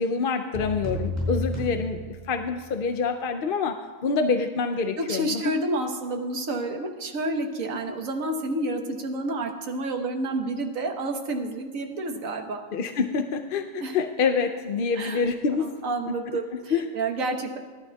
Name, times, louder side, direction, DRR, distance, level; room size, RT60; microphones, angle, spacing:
voice 1, 0.0-5.4 7.9-8.0 12.7-15.7 16.1-16.9, left 5 dB, 55° left, 6 dB, 0.6 m, -27 dB
sound 1, 0.5-2.8, left 1 dB, 10° left, 5.0 m, -31 dB
voice 2, 5.0-12.6 13.8-13.9 15.0-15.2 15.6-17.6, right 2 dB, 90° right, 3 dB, 1.5 m, -29 dB
24.5 x 11.5 x 2.3 m, 1.3 s
omnidirectional pair, 1.4 m